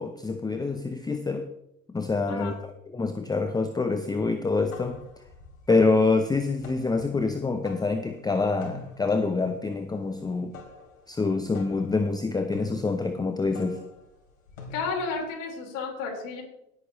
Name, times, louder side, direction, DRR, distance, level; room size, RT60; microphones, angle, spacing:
voice 1, 0.0-1.5 1.9-2.5 2.9-5.0 5.7-10.6 11.1-13.8, left 3 dB, 10° left, 8 dB, 0.8 m, -26 dB
sound 1, 4.6-15.2, left 4 dB, 75° left, 3.4 m, -47 dB
voice 2, 14.7-16.4, left 4 dB, 50° left, 0 dB, 4.6 m, -32 dB
18.0 x 8.8 x 3.1 m, 0.81 s
hypercardioid pair, 80°, 40 cm